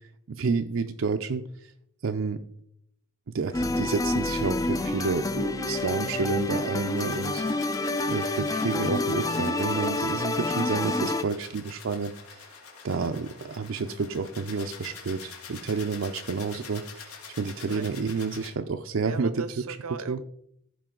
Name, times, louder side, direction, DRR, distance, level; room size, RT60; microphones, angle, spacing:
voice 1, 0.0-1.7 2.0-2.4 3.3-7.4 8.1-12.5 12.8-19.4 20.1-20.2, right 4 dB, 60° right, 6 dB, 0.5 m, -30 dB
sound 1, 3.5-11.2, left 2 dB, 15° left, 0.3 m, -28 dB
sound 2, 5.6-18.5, left 6 dB, 85° left, 2.0 m, -46 dB
voice 2, 19.0-20.2, right 5 dB, 85° right, 12 dB, 0.8 m, -38 dB
15.0 x 5.1 x 3.8 m, 0.73 s
head